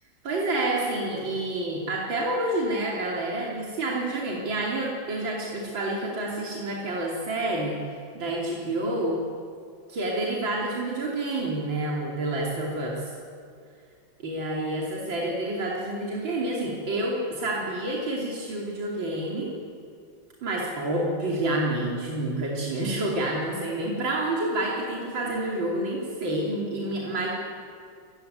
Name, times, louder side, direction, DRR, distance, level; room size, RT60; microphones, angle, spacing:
voice 1, 0.2-7.8 8.1-9.2 9.9-13.1 14.2-19.5 20.4-27.3, right 1 dB, 85° right, -3 dB, 3.8 m, -28 dB
27.5 x 16.0 x 9.4 m, 2.3 s
omnidirectional pair, 2.0 m